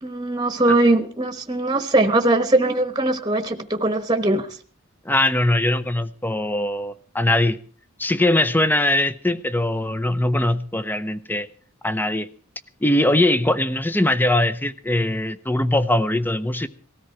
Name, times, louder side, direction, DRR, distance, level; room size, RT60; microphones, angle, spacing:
voice 1, 0.0-4.5, right 2 dB, 20° right, 7 dB, 1.2 m, -20 dB
voice 2, 5.0-7.6 8.0-11.5 11.8-12.3 12.8-16.7, left 1 dB, 10° left, 13 dB, 0.7 m, -21 dB
19.0 x 13.5 x 4.6 m, 0.42 s
head